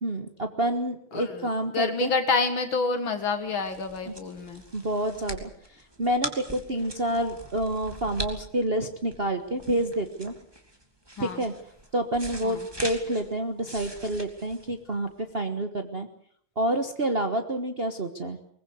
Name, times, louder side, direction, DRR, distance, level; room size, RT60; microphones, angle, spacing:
voice 1, 0.0-2.1 4.1-4.2 4.7-5.5 6.0-10.3 11.2-11.5 11.9-16.1 16.6-18.4, right 1 dB, 30° right, 6 dB, 1.4 m, -28 dB
voice 2, 1.1-4.6 11.2-11.4 12.4-12.7, left 4 dB, 70° left, 7 dB, 2.4 m, -28 dB
sound 1, 3.3-15.3, right 1 dB, 10° right, 2.8 m, -41 dB
23.0 x 20.5 x 8.0 m, 0.63 s
omnidirectional pair, 2.3 m